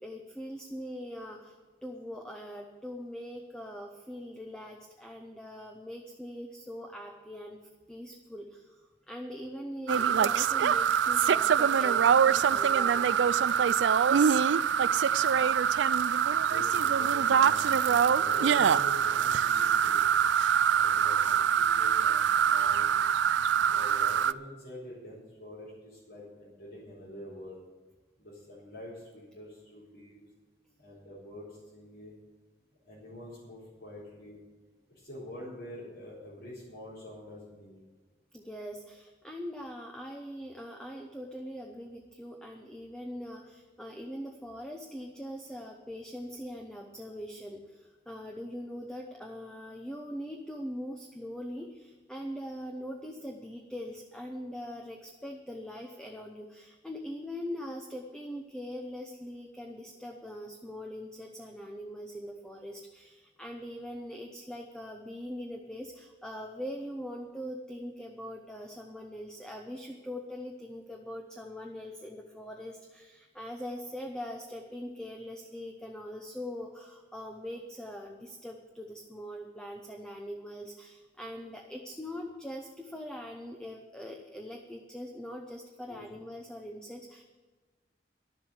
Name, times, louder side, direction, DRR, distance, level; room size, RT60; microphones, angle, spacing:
voice 1, 0.0-7.6 7.9-13.1 38.3-87.2, equal, 5° left, 2 dB, 0.7 m, -42 dB
sound 1, 9.9-24.3, right 8 dB, 80° right, 0.4 m, -24 dB
voice 2, 16.4-20.0 20.7-22.9 23.6-27.6 28.2-30.2 30.8-32.1 32.8-34.4 34.9-37.8 85.9-86.2, left 1 dB, 65° left, -10 dB, 4.3 m, -46 dB
11.5 x 7.6 x 9.8 m, 1.3 s
head